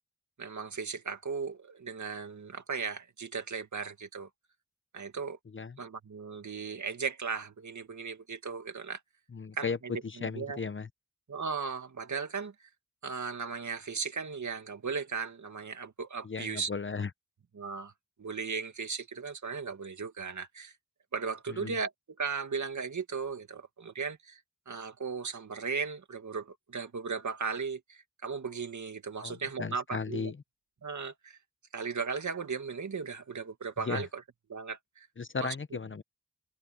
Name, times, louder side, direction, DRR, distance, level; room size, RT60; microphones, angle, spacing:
voice 1, 0.4-4.3 4.9-5.4 5.8-9.0 9.5-9.7 10.2-10.6 11.3-12.7 13.0-16.7 17.6-17.9 18.2-20.7 21.1-21.9 22.2-24.4 24.7-30.3 30.8-31.4 31.7-34.2 34.5-35.1 35.4-35.6, right 5 dB, 70° right, 2.3 m, -36 dB
voice 2, 9.3-9.8 10.0-10.9 16.2-17.1 21.5-21.7 29.2-30.4 33.8-34.1 35.2-36.0, left 5 dB, 40° left, 0.9 m, -36 dB
cardioid pair, 40°, 30 cm